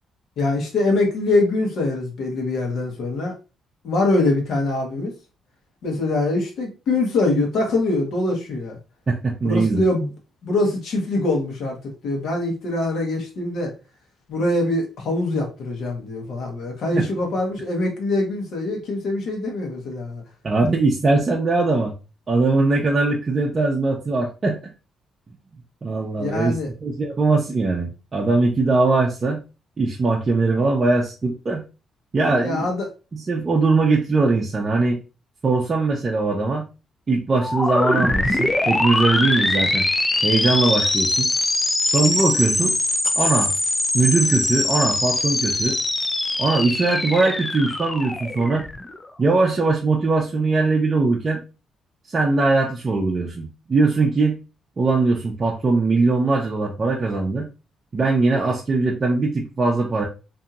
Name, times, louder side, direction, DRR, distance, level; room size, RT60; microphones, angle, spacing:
voice 1, 0.4-3.3 3.8-5.1 5.8-8.8 9.4-10.1 10.4-11.8 12.0-13.7 14.3-20.2 26.2-26.7 32.4-32.9, left 2 dB, 70° left, 1 dB, 1.0 m, -23 dB
voice 2, 9.1-9.8 16.9-17.1 20.4-21.9 22.3-24.6 25.8-29.4 29.8-31.6 32.1-32.7 33.1-35.0 35.4-36.7 37.1-39.8 40.2-41.3 41.9-42.7 43.2-43.5 43.9-45.8 46.4-48.7 49.2-51.4 52.1-54.4 54.8-57.5 57.9-60.1, right 3 dB, 35° right, -2 dB, 0.5 m, -21 dB
sound 1, 37.4-49.0, left 2 dB, 20° left, 0.4 m, -22 dB
2.8 x 2.6 x 2.4 m, 0.31 s
cardioid pair, 90°, 0 cm